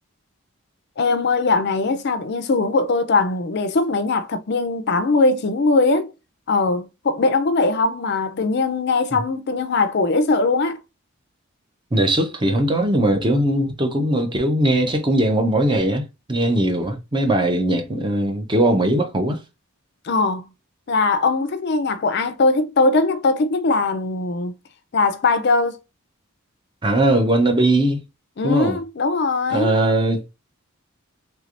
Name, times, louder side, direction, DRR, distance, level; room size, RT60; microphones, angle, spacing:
voice 1, 1.0-6.1 6.5-10.8 20.0-20.5 20.9-24.5 24.9-25.8 28.4-29.7, left 3 dB, 50° left, 0.4 m, -20 dB
voice 2, 11.9-19.4 26.8-28.0 28.4-28.8 29.5-30.3, right 1 dB, 20° right, 0.6 m, -20 dB
3.3 x 3.2 x 2.5 m
head